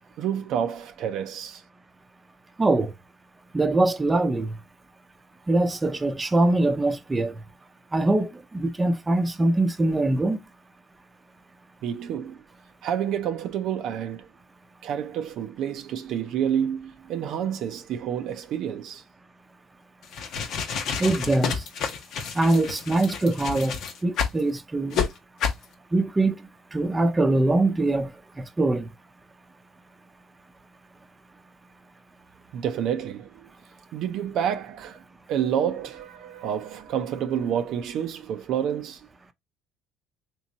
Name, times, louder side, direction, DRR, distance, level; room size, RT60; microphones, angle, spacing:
voice 1, 0.2-1.6 11.8-12.4 12.8-14.3 14.8-19.0 32.5-33.5 33.9-35.0 35.3-39.1, right 9 dB, 65° right, 0.5 m, -29 dB
voice 2, 2.6-2.9 3.5-4.6 5.5-7.3 7.9-10.4 21.0-21.6 22.3-25.0 25.9-26.4 26.7-28.1 28.4-28.9, right 2 dB, 20° right, 0.6 m, -23 dB
sound 1, 20.0-24.4 24.9-25.1 25.4-25.6, left 6 dB, 65° left, 0.8 m, -29 dB
3.4 x 3.0 x 2.8 m
supercardioid pair, 70°, 0 cm